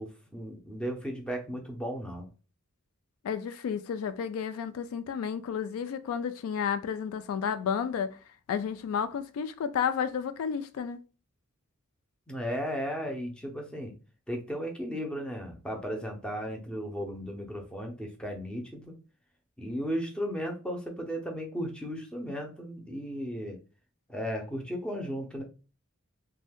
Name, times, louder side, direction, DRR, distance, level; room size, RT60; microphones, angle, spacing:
voice 1, 0.0-2.3 12.3-13.9 14.3-18.9 19.6-23.6 24.1-25.4, equal, 5° left, 0.6 m, -35 dB
voice 2, 3.2-8.2 8.5-11.0, left 7 dB, 85° left, 0.3 m, -31 dB
2.6 x 2.3 x 3.4 m
head